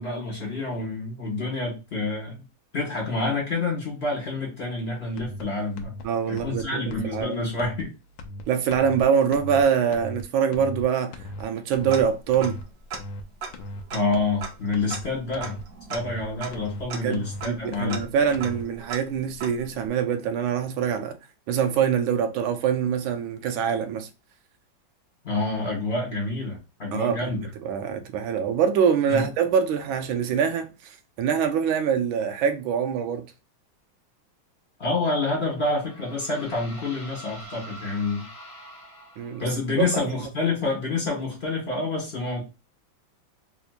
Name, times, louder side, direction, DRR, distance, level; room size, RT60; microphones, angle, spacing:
voice 1, 0.0-2.4 2.7-5.9 6.3-7.9 13.9-15.5 15.9-18.0 25.2-27.5 29.1-29.3 34.8-38.3 39.4-42.4, left 3 dB, 35° left, 1.5 m, -28 dB
sound 1, 5.2-5.4 5.8-6.0 6.4-6.6 6.9-7.2 7.6-7.8 8.2-8.4 8.7-9.0 9.3-9.6 9.9-10.2 10.5-10.8 11.1-11.4 11.7-12.0 12.3-12.6 12.9-13.2 13.5-13.8 14.1-14.4 14.7-15.0 15.3-15.6 15.9-16.2 16.5-16.8 17.1-17.4 17.7-18.0 18.3-18.6, left 1 dB, 80° left, 1.3 m, -38 dB
voice 2, 6.0-7.4 8.5-12.6 17.0-21.2 21.5-24.1 26.9-33.3 39.2-39.4 39.8-40.1, right 7 dB, 85° right, 1.4 m, -24 dB
Tick-tock, 11.9-12.6 12.9-13.0 13.4-19.9, right 5 dB, 60° right, 1.1 m, -39 dB
sound 2, 35.4-39.7, equal, 20° left, 0.8 m, -45 dB
3.5 x 2.9 x 2.4 m
omnidirectional pair, 2.1 m